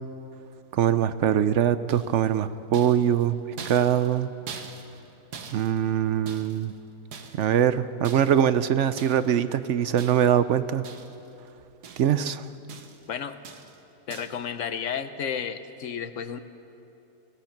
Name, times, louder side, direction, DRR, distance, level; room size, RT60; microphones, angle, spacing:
voice 1, 0.7-3.4 3.6-4.3 5.5-6.7 7.4-10.8 12.0-12.4, right 9 dB, 60° right, 13 dB, 0.8 m, -23 dB
sound 1, 1.9-2.3 2.7-6.7 7.1-7.6 8.0-8.5 9.0-9.4 10.0-10.5 10.8-11.3 11.6-12.3 12.7-13.1 13.4-13.8 14.1-14.5, right 6 dB, 90° right, 1.7 m, -43 dB
voice 2, 13.1-13.4 14.1-16.4, left 7 dB, 60° left, 11 dB, 1.1 m, -32 dB
24.0 x 18.5 x 5.9 m, 2.9 s
omnidirectional pair, 1.7 m